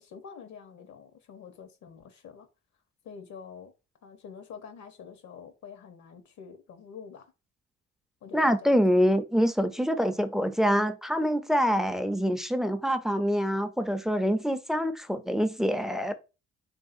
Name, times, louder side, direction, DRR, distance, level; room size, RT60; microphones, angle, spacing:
voice 1, 0.0-2.5 3.0-3.7 4.0-7.3 8.2-8.6, left 6 dB, 70° left, 0.7 m, -46 dB
voice 2, 8.3-16.1, equal, ahead, 0.3 m, -25 dB
3.4 x 2.6 x 2.4 m
cardioid pair, 90°, 30 cm